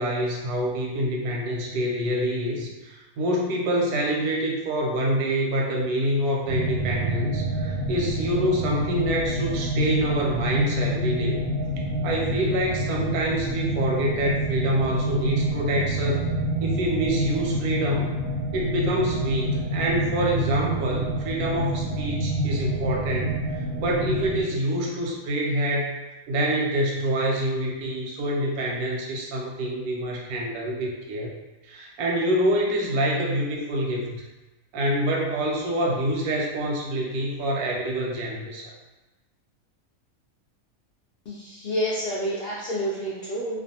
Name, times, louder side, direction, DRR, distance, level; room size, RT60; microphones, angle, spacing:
voice 1, 0.0-11.5 12.0-16.3 16.6-18.1 18.5-23.3 23.8-25.9 26.3-31.3 31.6-34.2 34.7-38.7, right 1 dB, 85° right, -1 dB, 1.1 m, -26 dB
sound 1, 6.5-24.4, right 1 dB, 55° right, 0.6 m, -27 dB
voice 2, 41.3-43.6, equal, 70° left, -7 dB, 0.5 m, -29 dB
2.5 x 2.2 x 2.7 m, 1.1 s
omnidirectional pair, 1.5 m